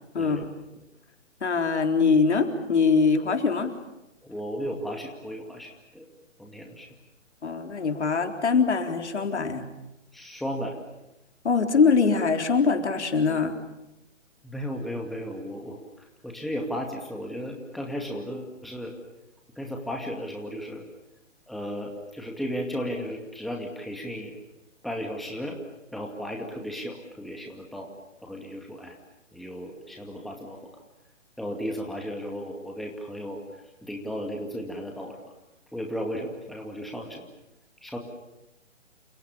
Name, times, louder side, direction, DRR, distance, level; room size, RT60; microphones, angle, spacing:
voice 1, 0.1-0.5 1.4-3.7 7.4-9.7 11.4-13.6, left 5 dB, 60° left, 5 dB, 4.1 m, -23 dB
voice 2, 4.2-6.1 6.4-6.9 10.1-10.8 14.4-15.8 16.2-18.9 19.6-20.8 21.5-24.3 24.8-25.6 25.9-27.9 28.2-29.0 29.3-30.6 31.4-33.4 33.8-35.2 35.7-37.3 37.8-38.0, equal, ahead, 1 dB, 2.3 m, -34 dB
29.0 x 28.0 x 7.2 m, 0.94 s
figure-of-eight pair, 135°, 38 cm